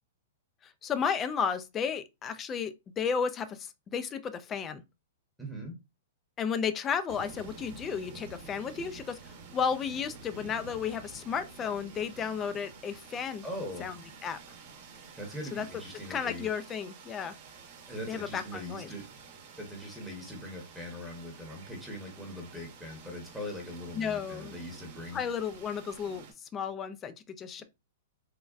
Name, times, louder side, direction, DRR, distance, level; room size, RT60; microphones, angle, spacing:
voice 1, 0.6-4.8 6.4-13.4 13.8-13.9 14.2-14.4 15.5-15.6 16.1-17.3 18.1-18.9 23.9-24.6 25.1-27.6, left 6 dB, 20° left, 0.4 m, -33 dB
voice 2, 5.4-5.7 13.4-13.9 15.1-16.5 17.9-19.0 19.6-25.2 27.6-27.7, left 1 dB, ahead, 0.9 m, -41 dB
sound 1, 7.1-26.3, right 5 dB, 50° right, 0.8 m, -50 dB
3.4 x 2.1 x 2.3 m
hypercardioid pair, 135°, 0 cm